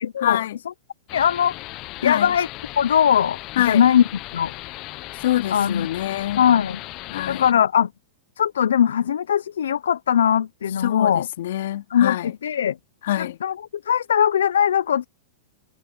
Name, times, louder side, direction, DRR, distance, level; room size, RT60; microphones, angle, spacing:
voice 1, 0.2-0.6 2.0-2.3 3.6-3.8 5.2-6.4 7.1-7.6 10.8-12.3 13.0-13.4, left 13 dB, 70° left, 2.5 m, -25 dB
voice 2, 1.1-1.5 2.0-2.5 2.8-3.4 3.7-4.0 4.3-4.5 5.5-5.9 6.4-6.8 7.3-7.9 8.4-11.3 11.9-12.2 12.4-12.8 13.2-13.5 13.9-15.1, left 9 dB, 85° left, 0.6 m, -19 dB
sound 1, 1.1-7.5, left 19 dB, 40° left, 0.8 m, -37 dB
hypercardioid pair, 130°, 0 cm